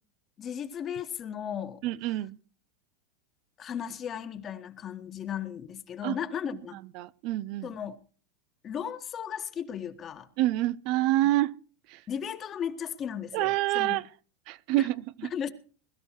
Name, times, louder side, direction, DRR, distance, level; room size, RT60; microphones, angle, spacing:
voice 1, 0.4-1.8 2.1-2.2 3.6-6.8 7.6-8.0 8.6-10.3 11.2-11.3 12.1-14.0 14.8-14.9 15.3-15.5, left 8 dB, 35° left, 1.6 m, -36 dB
voice 2, 1.8-2.4 6.0-6.1 7.0-7.7 10.4-11.5 11.9-12.0 13.3-14.0 14.5-15.3, right 16 dB, 55° right, 0.6 m, -27 dB
21.0 x 13.0 x 3.1 m
hypercardioid pair, 105°, 0 cm